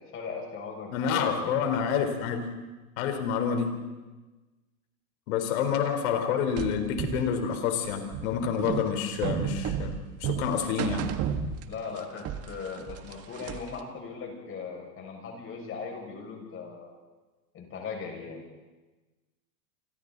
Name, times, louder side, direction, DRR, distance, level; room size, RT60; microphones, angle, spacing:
voice 1, 0.0-1.3 11.7-16.9 17.5-18.4, left 5 dB, 30° left, 1 dB, 6.6 m, -38 dB
voice 2, 0.9-2.5 3.0-3.7 5.3-11.1, left 7 dB, 65° left, 6 dB, 4.2 m, -28 dB
sound 1, 6.6-12.0 12.3-13.8, right 8 dB, 30° right, 1.5 m, -33 dB
28.5 x 26.0 x 4.1 m, 1.2 s
supercardioid pair, 135°, 45 cm